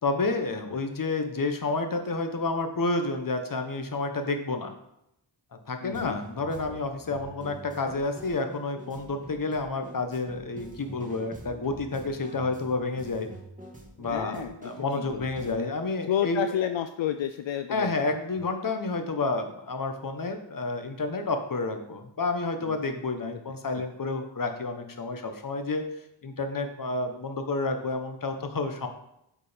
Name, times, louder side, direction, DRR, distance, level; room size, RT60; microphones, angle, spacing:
voice 1, 0.0-4.7 5.7-13.3 14.0-16.7 17.7-25.9 26.2-28.9, left 3 dB, 45° left, 6 dB, 1.2 m, -30 dB
voice 2, 5.8-6.2 14.1-15.7 16.1-17.9 22.7-22.8, left 10 dB, 75° left, 9 dB, 0.6 m, -31 dB
sound 1, 5.9-15.5, right 2 dB, 15° right, 1.8 m, -46 dB
8.6 x 5.1 x 5.2 m, 0.81 s
wide cardioid pair, 90°, 45 cm